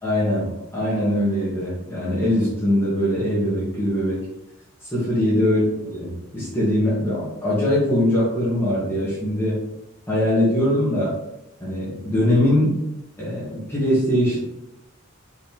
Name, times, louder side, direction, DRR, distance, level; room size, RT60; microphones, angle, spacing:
voice 1, 0.0-4.2 4.8-9.6 10.1-11.1 11.6-12.9 13.2-14.4, left 1 dB, 10° left, -9 dB, 2.2 m, -22 dB
5.3 x 4.9 x 3.6 m, 0.89 s
head